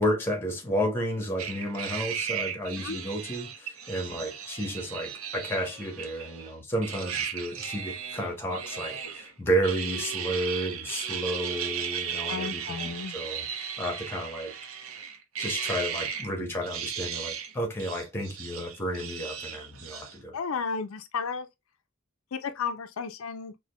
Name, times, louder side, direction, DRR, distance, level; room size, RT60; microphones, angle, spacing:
voice 1, 0.0-13.5 13.8-14.5 15.4-20.4, equal, 10° left, 1.0 m, -32 dB
sound 1, 1.4-6.5 6.8-9.3 9.6-16.3 16.6-17.5 17.8-20.2, right 8 dB, 85° right, 0.6 m, -36 dB
voice 2, 12.3-13.1 20.3-21.5 22.3-23.5, left 5 dB, 85° left, 0.5 m, -33 dB
4.8 x 2.2 x 2.2 m
head